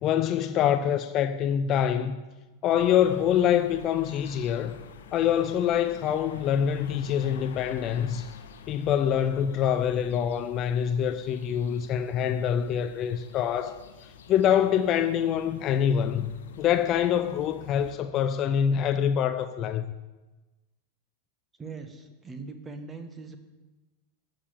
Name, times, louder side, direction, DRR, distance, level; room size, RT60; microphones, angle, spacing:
voice 1, 0.0-2.2 2.6-4.8 5.1-8.3 8.7-13.8 14.3-16.3 16.6-19.8, left 9 dB, 35° left, 0.6 m, -25 dB
sound 1, 2.8-17.9, left 6 dB, 60° left, 1.2 m, -48 dB
voice 2, 21.6-23.4, right 4 dB, 15° right, 1.7 m, -41 dB
14.0 x 6.8 x 8.7 m
figure-of-eight pair, 90°, 0 cm